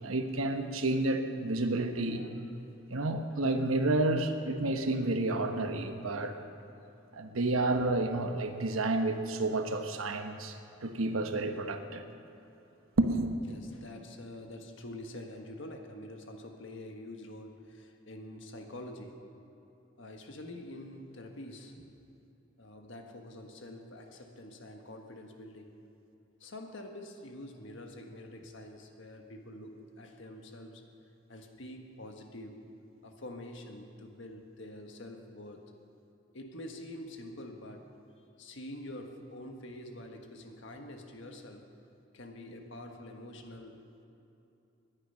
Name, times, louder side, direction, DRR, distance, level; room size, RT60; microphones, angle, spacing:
voice 1, 0.0-2.3 2.9-6.3 7.1-10.6 10.8-12.0 13.0-13.3, right 2 dB, 85° right, 7 dB, 1.1 m, -30 dB
voice 2, 13.5-19.2 20.0-22.0 22.6-25.7 26.4-30.8 31.3-32.6 33.0-35.6 36.3-37.9 38.4-41.6 42.1-43.8, left 1 dB, 65° left, 3 dB, 1.5 m, -46 dB
20.0 x 10.0 x 5.7 m, 2.9 s
head